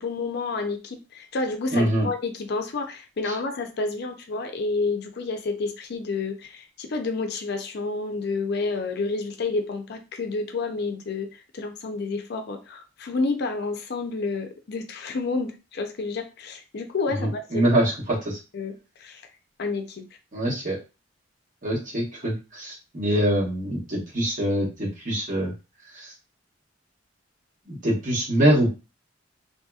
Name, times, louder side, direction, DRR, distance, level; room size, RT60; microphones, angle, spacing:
voice 1, 0.0-17.7 18.5-19.2 19.6-20.0 22.2-22.3, left 3 dB, 55° left, 5 dB, 0.5 m, -30 dB
voice 2, 1.7-2.1 3.2-3.3 17.2-17.9 18.2-18.4 20.3-20.8 21.6-25.5 25.9-26.1 27.7-28.7, right 1 dB, 45° right, -4 dB, 1.2 m, -24 dB
2.8 x 2.7 x 2.3 m, 0.29 s
head